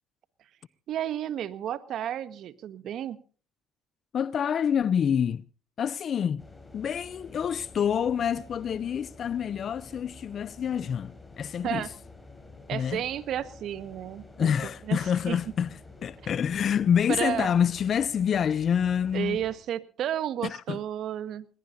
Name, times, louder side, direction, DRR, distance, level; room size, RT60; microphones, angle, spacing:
voice 1, 0.9-3.2 11.6-11.9 12.7-15.4 16.2-16.3 17.1-17.5 19.1-21.5, right 10 dB, 65° right, 1.4 m, -32 dB
voice 2, 4.1-5.5 5.8-6.4 6.7-11.9 12.7-13.0 14.4-15.7 16.0-19.4 20.4-20.8, left 8 dB, 50° left, 0.6 m, -27 dB
sound 1, 6.4-19.6, left 3 dB, 15° left, 4.9 m, -49 dB
21.0 x 20.5 x 2.7 m
supercardioid pair, 90°, 0 cm